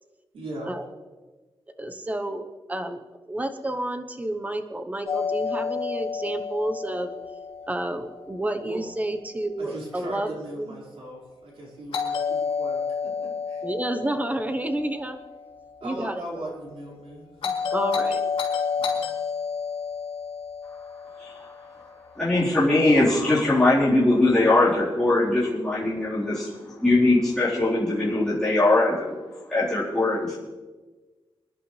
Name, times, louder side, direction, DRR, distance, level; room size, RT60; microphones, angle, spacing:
voice 1, 0.3-0.7 8.6-8.8 9.6-13.6 15.8-17.5 18.7-19.1, right 1 dB, 80° right, -4 dB, 5.0 m, -39 dB
voice 2, 1.8-7.1 7.7-10.3 10.6-10.7 13.6-15.2 15.8-16.5 17.7-18.2, right 1 dB, 15° right, 7 dB, 1.0 m, -30 dB
Doorbell, 5.1-9.0 11.9-16.1 17.4-21.8, left 6 dB, 80° left, 3.0 m, -30 dB
voice 3, 21.2-21.5 22.2-29.2 29.5-30.3, left 2 dB, 5° left, -12 dB, 4.2 m, -21 dB
26.0 x 11.0 x 3.3 m, 1.3 s
wide cardioid pair, 140°, 10 cm